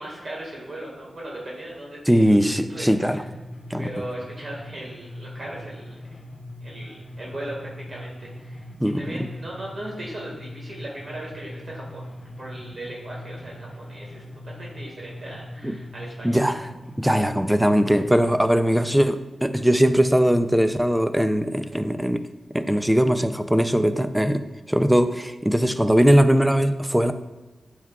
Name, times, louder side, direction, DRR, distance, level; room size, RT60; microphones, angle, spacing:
voice 1, 0.0-3.2 3.8-6.2 6.6-8.7 9.0-16.4, right 1 dB, 55° right, -4 dB, 1.8 m, -38 dB
sound 1, 2.1-18.1, left 1 dB, 65° left, 0.9 m, -41 dB
voice 2, 2.1-3.2 3.7-3.9 8.8-9.3 15.6-15.8 16.2-16.6 17.0-22.2 22.5-24.4 24.7-27.1, equal, 5° right, 10 dB, 0.4 m, -20 dB
9.2 x 4.6 x 2.4 m, 1.1 s
wide cardioid pair, 75°, 0 cm